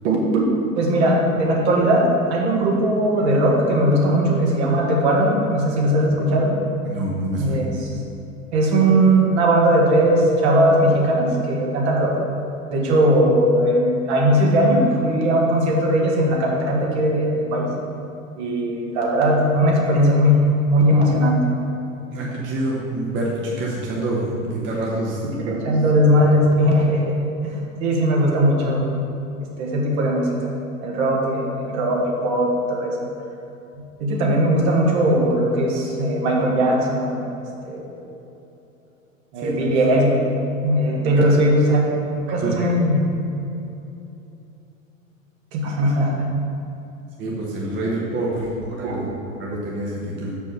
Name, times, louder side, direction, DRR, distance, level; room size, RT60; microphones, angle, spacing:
voice 1, 0.0-0.4 0.8-2.0 2.3-6.5 7.4-7.7 8.5-12.1 12.7-17.7 18.3-21.4 25.4-27.1 27.4-28.9 29.4-30.3 30.8-33.1 34.0-37.2 37.6-37.9 39.3-40.1 40.6-41.8 42.3-43.0 45.5-46.3 48.4-48.5 48.8-49.0, right 1 dB, 55° right, -2 dB, 1.8 m, -19 dB
voice 2, 6.9-7.5 22.1-25.2 39.4-39.5 41.0-41.3 42.4-42.7 47.2-49.1 49.4-50.3, right 1 dB, 30° right, -4 dB, 1.3 m, -26 dB
6.2 x 5.4 x 6.3 m, 2.9 s
figure-of-eight pair, 90°, 40 cm